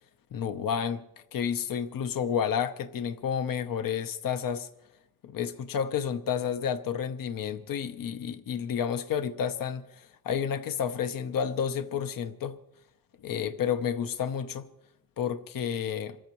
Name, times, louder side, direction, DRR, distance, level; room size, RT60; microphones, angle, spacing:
voice 1, 0.3-1.1 1.3-4.7 5.2-12.6 13.2-14.7 15.2-16.2, left 8 dB, 85° left, 0.9 m, -30 dB
27.0 x 14.0 x 3.1 m
cardioid pair, 75°, 33 cm